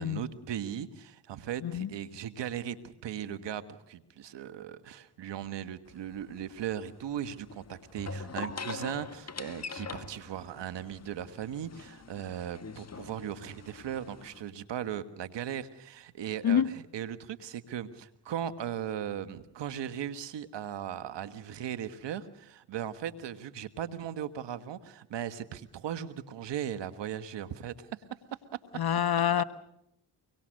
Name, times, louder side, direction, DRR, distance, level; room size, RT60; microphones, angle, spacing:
voice 1, 0.0-27.9, right 9 dB, 80° right, 12 dB, 1.5 m, -38 dB
sound 1, 5.9-14.4, left 4 dB, 35° left, 1.6 m, -44 dB
voice 2, 28.7-29.4, left 9 dB, 60° left, 12 dB, 1.2 m, -26 dB
24.5 x 23.0 x 6.5 m, 0.78 s
supercardioid pair, 50°, 42 cm